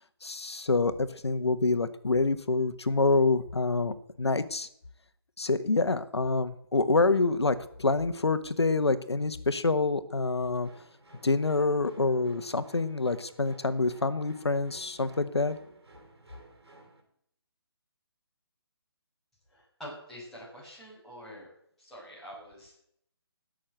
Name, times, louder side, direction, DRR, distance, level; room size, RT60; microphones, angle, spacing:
voice 1, 0.2-4.7 5.4-10.7 11.2-15.6, left 3 dB, 90° left, 12 dB, 1.3 m, -27 dB
sound 1, 10.6-17.0, right 2 dB, 80° right, 4.2 m, -55 dB
voice 2, 19.5-21.5 21.8-22.7, equal, 5° left, -9 dB, 5.7 m, -46 dB
17.0 x 6.6 x 8.0 m, 0.70 s
figure-of-eight pair, 155°, 13 cm